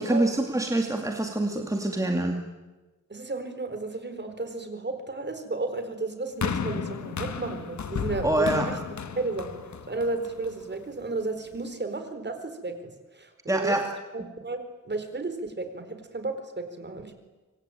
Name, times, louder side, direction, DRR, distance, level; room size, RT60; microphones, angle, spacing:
voice 1, 0.0-2.4 8.2-8.7 13.5-13.9, right 1 dB, 10° right, 3 dB, 2.4 m, -25 dB
voice 2, 3.1-8.8 9.2-9.5 9.9-13.8 14.1-17.1, right 3 dB, 35° right, 8 dB, 4.3 m, -33 dB
sound 1, 6.4-10.8 11.5-11.6, left 6 dB, 65° left, 1.5 m, -33 dB
26.0 x 24.5 x 9.3 m, 1.2 s
wide cardioid pair, 120°, 31 cm